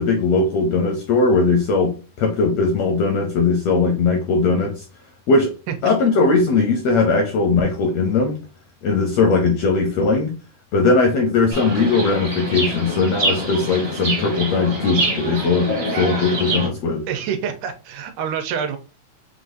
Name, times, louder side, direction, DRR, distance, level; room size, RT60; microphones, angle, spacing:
voice 1, 0.0-4.8 5.3-5.5 5.8-8.4 8.8-10.3 10.7-17.0, left 4 dB, 80° left, 1.5 m, -19 dB
Chirp tweet, 11.5-16.7, right 1 dB, 45° right, 0.6 m, -25 dB
voice 2, 17.1-18.8, right 7 dB, 85° right, 2.2 m, -26 dB
6.0 x 2.6 x 2.6 m
omnidirectional pair, 3.7 m